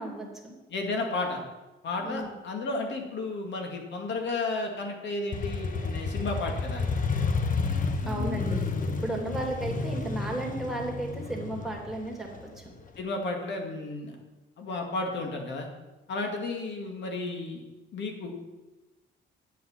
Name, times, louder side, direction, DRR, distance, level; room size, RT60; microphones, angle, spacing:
voice 1, 0.0-0.5 2.0-2.3 8.1-8.6 9.0-12.7, right 1 dB, ahead, -2 dB, 2.7 m, -34 dB
voice 2, 0.7-1.4 1.8-6.9 8.0-8.4 8.9-9.0 13.0-14.2 14.6-15.7 16.1-17.6 17.9-18.5, left 2 dB, 65° left, 2 dB, 2.2 m, -33 dB
Motorcycle, 5.3-13.0, left 4 dB, 40° left, 1.1 m, -31 dB
9.3 x 7.6 x 5.8 m, 1.1 s
cardioid pair, 90°, 20 cm